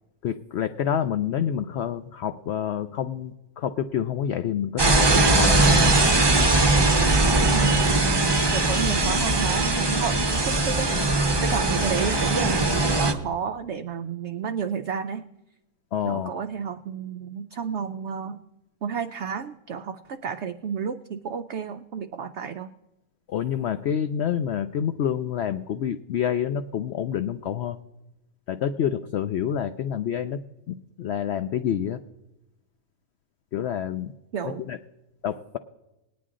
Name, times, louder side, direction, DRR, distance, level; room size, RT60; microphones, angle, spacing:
voice 1, 0.2-5.9 15.9-16.3 23.3-27.8 28.5-30.4 30.7-32.0 33.5-34.1 34.4-34.8 35.2-35.6, left 9 dB, 75° left, 10 dB, 0.6 m, -28 dB
sound 1, 4.8-13.1, right 2 dB, 25° right, 0.6 m, -20 dB
voice 2, 7.5-7.8 8.5-10.9 11.4-15.2 16.0-18.4 18.8-22.7 34.3-34.6, right 7 dB, 70° right, 9 dB, 0.6 m, -31 dB
19.5 x 9.5 x 3.7 m, 0.97 s
omnidirectional pair, 1.6 m